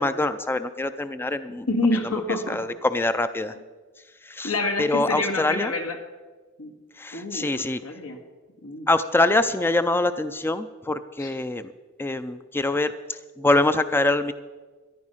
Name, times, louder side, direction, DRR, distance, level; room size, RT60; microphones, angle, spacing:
voice 1, 0.0-1.7 2.5-3.5 4.3-4.5 4.8-5.7 7.0-7.8 8.9-11.7 12.0-12.9 13.4-14.3, left 2 dB, 10° left, 11 dB, 0.4 m, -24 dB
voice 2, 1.5-2.6 4.4-6.0 6.6-6.7 7.1-8.2 8.6-8.9 11.2-11.3, left 2 dB, 85° left, 4 dB, 2.0 m, -27 dB
14.5 x 10.5 x 5.6 m, 1.3 s
head